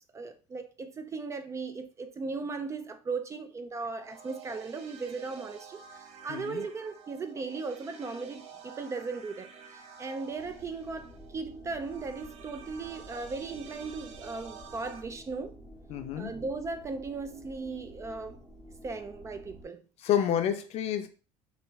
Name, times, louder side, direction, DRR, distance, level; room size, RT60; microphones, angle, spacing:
voice 1, 0.1-15.6 16.1-18.4 18.8-19.8, right 4 dB, 25° right, 0.3 m, -37 dB
sound 1, 4.0-15.0, right 6 dB, 60° right, 0.6 m, -50 dB
voice 2, 6.3-6.6 15.9-16.4 20.0-21.1, left 10 dB, 55° left, 0.5 m, -29 dB
sound 2, 10.3-19.6, equal, 5° left, 1.0 m, -50 dB
3.4 x 2.5 x 3.1 m
cardioid pair, 130°, 13 cm